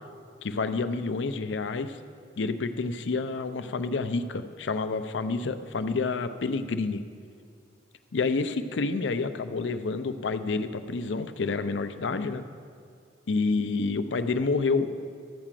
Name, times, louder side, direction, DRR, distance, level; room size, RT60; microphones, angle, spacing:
voice 1, 0.4-2.0 2.4-7.0 8.1-12.4 13.3-14.9, left 4 dB, 75° left, 10 dB, 0.5 m, -28 dB
13.0 x 4.9 x 7.4 m, 2.2 s
head